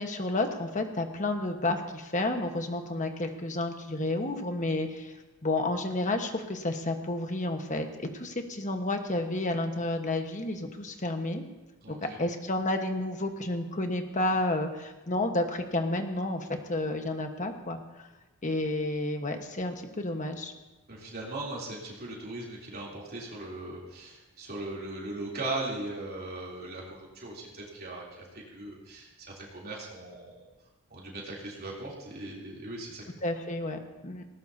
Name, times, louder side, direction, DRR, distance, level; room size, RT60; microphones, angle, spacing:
voice 1, 0.0-5.1 5.4-11.4 11.9-18.1 18.4-20.5 33.2-34.3, left 2 dB, 35° left, 5 dB, 1.3 m, -31 dB
voice 2, 11.8-12.2 20.9-30.4 30.9-33.0, right 2 dB, 45° right, -4 dB, 3.3 m, -39 dB
19.0 x 18.0 x 2.8 m, 1.1 s
head